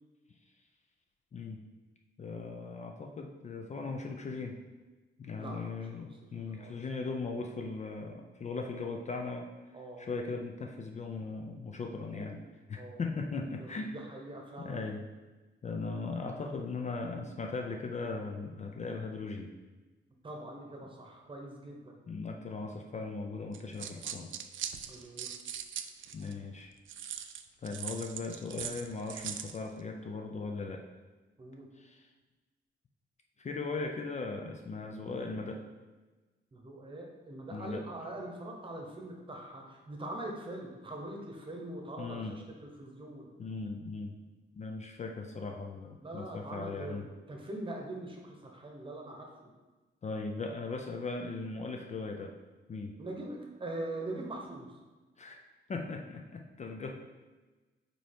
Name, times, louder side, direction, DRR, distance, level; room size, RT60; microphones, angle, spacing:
voice 1, 1.3-1.6 2.2-4.6 5.2-9.5 10.0-12.4 12.7-13.9 14.6-15.0 15.6-19.5 22.1-24.3 24.9-25.1 26.1-26.7 27.6-30.8 31.8-32.1 33.4-35.6 37.5-37.8 42.0-42.3 43.4-44.2 44.5-47.1 50.0-52.3 52.7-53.0 55.2-55.4 55.7-57.0, left 3 dB, 35° left, 2 dB, 0.4 m, -38 dB
voice 2, 5.4-6.8 9.7-10.1 12.0-12.3 12.7-13.0 13.6-14.8 20.2-21.9 24.9-25.3 31.4-31.7 36.5-43.3 46.0-47.0 47.3-49.3 53.0-54.7, right 1 dB, 25° right, 0 dB, 0.9 m, -43 dB
sound 1, 23.5-26.3 26.9-29.6, right 9 dB, 70° right, 0.4 m, -40 dB
5.3 x 4.4 x 4.4 m, 1.2 s
wide cardioid pair, 175°, 21 cm